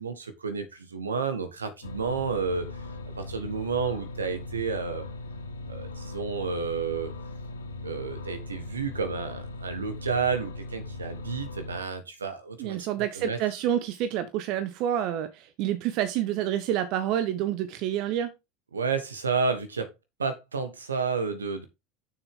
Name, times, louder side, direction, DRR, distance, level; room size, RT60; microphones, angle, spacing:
voice 1, 0.0-2.8 3.2-5.0 5.7-7.1 7.8-13.4 18.7-19.9 20.2-21.7, right 5 dB, 85° right, 1.4 m, -31 dB
sound 1, 1.8-11.8, left 2 dB, 85° left, 1.4 m, -39 dB
voice 2, 12.6-18.3, right 11 dB, 55° right, 0.8 m, -28 dB
6.9 x 6.5 x 3.7 m
figure-of-eight pair, 75°, 0 cm